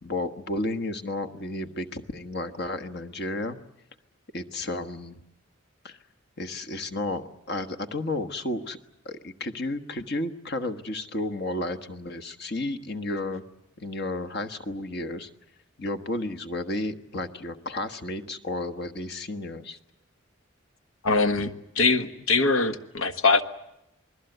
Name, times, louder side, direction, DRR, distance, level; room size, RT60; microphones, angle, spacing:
voice 1, 0.0-3.6 4.3-5.2 5.8-6.0 6.4-8.8 9.0-13.4 13.8-15.3 15.8-19.8, left 2 dB, 50° left, 8 dB, 1.4 m, -32 dB
voice 2, 21.0-23.4, left 3 dB, 90° left, 8 dB, 1.4 m, -23 dB
28.0 x 21.0 x 8.0 m, 0.88 s
head